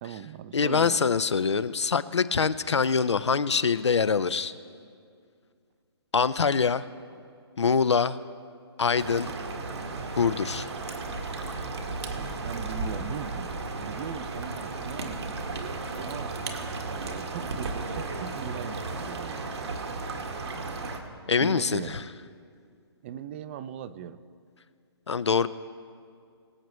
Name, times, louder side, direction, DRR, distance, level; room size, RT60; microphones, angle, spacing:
voice 1, 0.0-1.0 12.1-15.4 16.0-16.4 16.9-19.5 21.4-22.1 23.0-24.2, right 9 dB, 25° right, 13 dB, 0.4 m, -39 dB
voice 2, 0.5-4.5 6.1-6.9 7.6-8.2 8.8-9.3 10.2-10.7 21.3-22.0 25.1-25.5, left 5 dB, 85° left, 15 dB, 0.6 m, -24 dB
sound 1, 9.0-21.0, right 3 dB, 70° right, 1.7 m, -34 dB
23.0 x 8.1 x 3.1 m, 2.3 s
hypercardioid pair, 140°, 14 cm